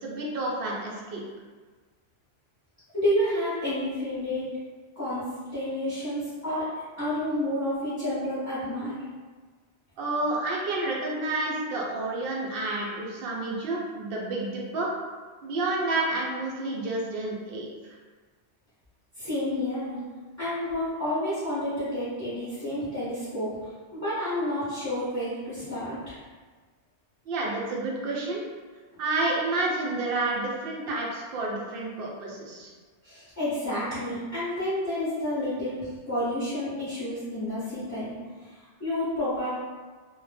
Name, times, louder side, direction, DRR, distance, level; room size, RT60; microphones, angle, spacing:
voice 1, 0.0-1.2 10.0-14.9 15.4-18.0 27.3-28.4 29.0-32.7, right 2 dB, 60° right, -3 dB, 0.6 m, -30 dB
voice 2, 2.9-4.5 5.0-6.7 7.0-9.1 19.2-20.0 20.4-26.2 33.0-39.5, left 1 dB, 15° left, -13 dB, 0.6 m, -30 dB
2.1 x 2.0 x 3.2 m, 1.4 s
omnidirectional pair, 1.2 m